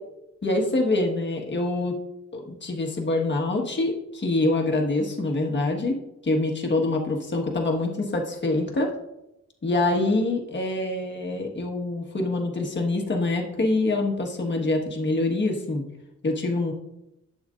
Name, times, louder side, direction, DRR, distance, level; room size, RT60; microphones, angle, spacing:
voice 1, 0.4-2.0 2.3-8.9 9.6-15.8 16.2-16.7, left 2 dB, 40° left, 1 dB, 1.4 m, -25 dB
11.5 x 8.0 x 2.5 m, 0.87 s
wide cardioid pair, 150°, 29 cm